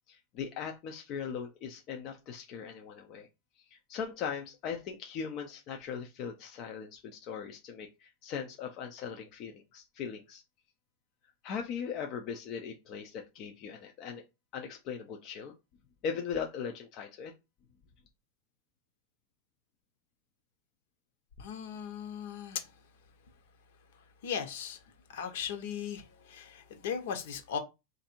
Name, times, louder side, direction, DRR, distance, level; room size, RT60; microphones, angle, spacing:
voice 1, 0.1-3.3 3.7-10.4 11.4-14.2 14.5-15.5 16.0-17.3, left 7 dB, 35° left, 0.5 m, -39 dB
voice 2, 21.4-22.7 24.2-24.8 25.1-27.6, left 7 dB, 65° left, 1.1 m, -37 dB
3.5 x 2.6 x 4.3 m
supercardioid pair, 165°, 0 cm